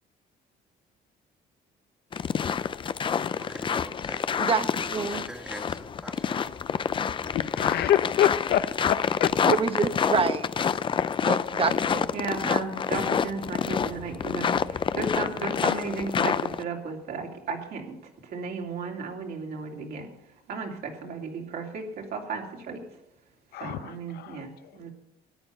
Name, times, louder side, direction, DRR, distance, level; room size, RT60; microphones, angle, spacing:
sound 1, 2.1-16.6, left 7 dB, 30° left, 0.5 m, -28 dB
voice 1, 3.4-4.2 4.9-6.5, equal, 5° right, 4 dB, 1.7 m, -43 dB
voice 2, 4.4-5.2 9.4-10.5 11.2-12.1, right 5 dB, 35° right, 10 dB, 1.1 m, -27 dB
voice 3, 7.3-9.3 23.5-24.4, left 11 dB, 75° left, 12 dB, 0.8 m, -26 dB
voice 4, 12.1-20.1 20.5-22.8 23.6-24.9, right 4 dB, 65° right, 0 dB, 3.1 m, -34 dB
13.0 x 9.5 x 5.7 m, 0.91 s
cardioid pair, 110°, 17 cm